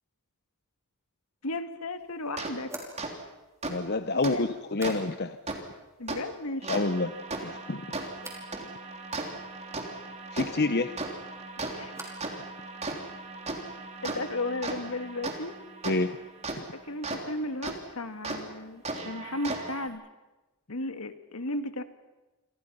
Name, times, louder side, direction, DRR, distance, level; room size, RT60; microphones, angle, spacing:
voice 1, 1.4-2.7 4.1-4.5 6.0-6.7 11.7-12.0 14.0-15.6 16.7-20.0 20.7-21.8, left 2 dB, 75° left, 9 dB, 1.9 m, -35 dB
sound 1, 1.4-1.5 2.6-5.5 5.8-6.4 6.7-7.3 8.2-8.5 10.9-12.4 12.7-13.3, right 2 dB, 15° right, 4.9 m, -48 dB
sound 2, 2.4-2.5 3.0-3.1 3.6-3.7 4.2-4.3 4.8-4.9 5.5-5.6 6.1-6.2 6.6-17.2 17.6-17.8 18.2-18.4 18.8-19.9, right 3 dB, 30° right, 3.4 m, -37 dB
voice 2, 3.7-5.4 6.7-7.1 7.4-7.8 10.3-10.9 15.8-16.1, left 3 dB, 45° left, 10 dB, 0.9 m, -27 dB
29.0 x 26.0 x 5.6 m, 1.1 s
head